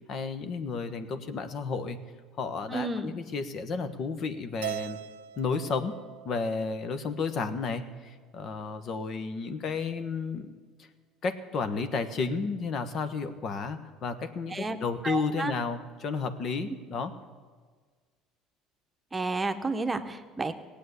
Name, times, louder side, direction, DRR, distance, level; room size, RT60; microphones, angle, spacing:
voice 1, 0.1-2.0 2.4-5.0 5.4-6.0 6.2-10.5 11.2-17.1, left 4 dB, 55° left, 9 dB, 1.2 m, -32 dB
voice 2, 2.7-3.1 14.5-14.8 15.0-15.5 19.1-20.5, right 3 dB, 20° right, 8 dB, 1.0 m, -31 dB
Keyboard (musical), 4.6-7.0, right 16 dB, 90° right, 0.4 m, -40 dB
17.0 x 8.4 x 8.1 m, 1.5 s
supercardioid pair, 80°, 0 cm